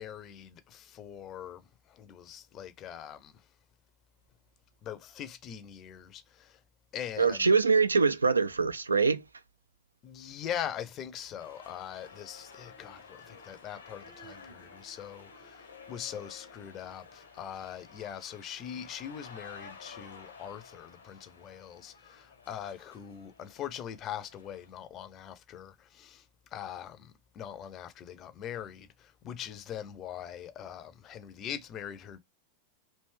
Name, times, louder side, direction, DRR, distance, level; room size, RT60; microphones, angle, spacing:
voice 1, 0.0-3.3 4.8-6.6 6.9-7.5 10.0-26.2 26.5-32.2, left 9 dB, 30° left, 0.5 m, -42 dB
voice 2, 7.2-9.2, right 4 dB, 75° right, 0.3 m, -24 dB
sound 1, 11.4-24.7, left 4 dB, 75° left, 0.9 m, -52 dB
3.3 x 2.6 x 3.1 m
figure-of-eight pair, 90°, 0 cm